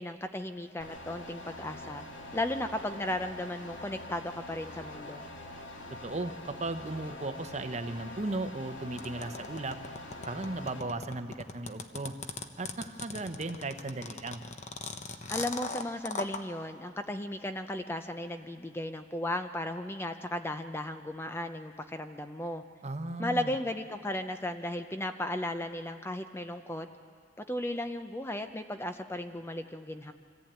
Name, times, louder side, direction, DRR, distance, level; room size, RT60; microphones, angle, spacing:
voice 1, 0.0-2.0 2.3-5.2 15.3-22.6 23.2-26.9 27.5-30.1, left 1 dB, 15° left, 8 dB, 0.6 m, -35 dB
sound 1, 0.8-10.8, left 1 dB, 85° left, 2.3 m, -45 dB
voice 2, 6.0-9.8 10.3-12.1 12.6-14.4 22.8-23.5, right 2 dB, 35° right, 8 dB, 0.9 m, -36 dB
sound 2, 9.0-16.4, left 3 dB, 40° left, 1.0 m, -38 dB
25.0 x 15.0 x 8.9 m, 2.3 s
head